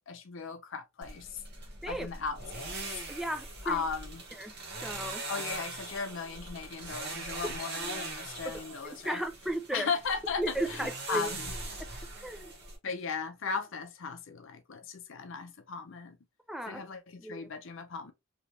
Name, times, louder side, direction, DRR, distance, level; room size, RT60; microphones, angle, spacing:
voice 1, 0.0-1.4 1.9-2.8 3.6-4.2 4.9-9.2 9.7-11.5 12.8-16.2 16.7-18.1, left 5 dB, 60° left, 0.6 m, -37 dB
sound 1, 1.0-12.8, right 2 dB, 50° right, 1.2 m, -41 dB
voice 2, 3.1-3.8 4.4-4.5 4.8-5.2 9.0-9.9 10.4-11.3 12.2-12.5 12.9-13.0 16.5-16.8 17.2-17.5, right 1 dB, ahead, 0.4 m, -35 dB
3.2 x 3.0 x 2.7 m
head